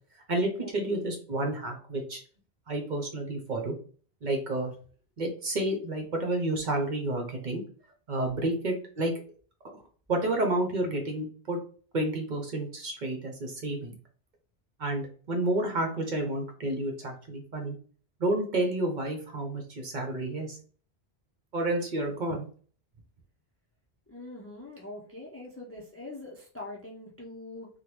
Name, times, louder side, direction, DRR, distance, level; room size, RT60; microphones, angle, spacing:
voice 1, 0.3-2.2 2.7-3.7 4.2-4.7 5.2-7.6 8.1-9.1 9.7-9.8 10.1-11.6 11.9-13.9 14.8-17.8 18.2-20.6 21.5-22.5, right 1 dB, 50° right, 3 dB, 0.7 m, -30 dB
voice 2, 24.1-27.7, left 2 dB, 20° left, -2 dB, 0.4 m, -43 dB
3.6 x 2.1 x 2.9 m, 0.43 s
omnidirectional pair, 1.1 m